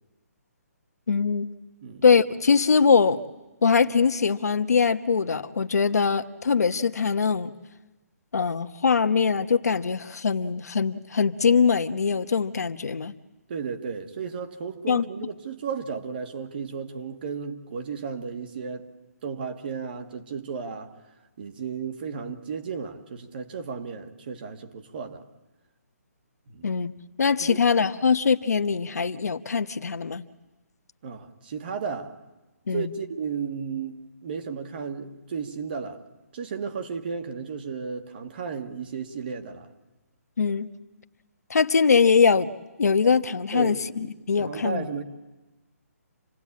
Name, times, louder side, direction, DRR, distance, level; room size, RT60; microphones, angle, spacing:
voice 1, 1.1-1.5 2.0-3.2 3.6-7.5 8.3-13.1 14.9-15.0 26.6-26.9 27.2-30.2 32.7-32.9 40.4-40.7 41.5-42.5 42.8-44.8, left 5 dB, 80° left, 1.2 m, -22 dB
voice 2, 13.5-18.9 19.2-20.9 21.4-25.2 26.5-26.7 27.4-27.6 31.0-32.2 32.7-34.0 34.2-36.0 36.3-39.7 43.5-44.1 44.4-45.0, right 6 dB, 35° right, 1.8 m, -34 dB
27.5 x 19.0 x 8.5 m
hypercardioid pair, 170°, 9 cm